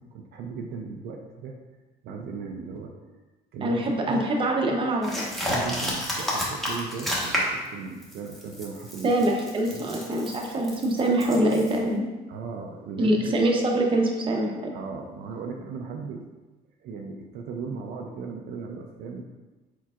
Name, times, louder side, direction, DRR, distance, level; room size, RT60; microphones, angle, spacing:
voice 1, 0.0-1.6 2.0-2.9 3.5-4.2 5.4-9.1 9.7-9.9 12.3-13.3 14.7-16.3 16.8-19.2, right 4 dB, 70° right, 2 dB, 0.5 m, -37 dB
voice 2, 3.6-5.3 9.0-12.0 13.0-14.5, right 1 dB, 30° right, 0 dB, 0.8 m, -24 dB
sound 1, 5.0-7.7 8.0-11.8, equal, ahead, 1.2 m, -31 dB
4.6 x 4.5 x 2.4 m, 1.2 s
cardioid pair, 110°, 17 cm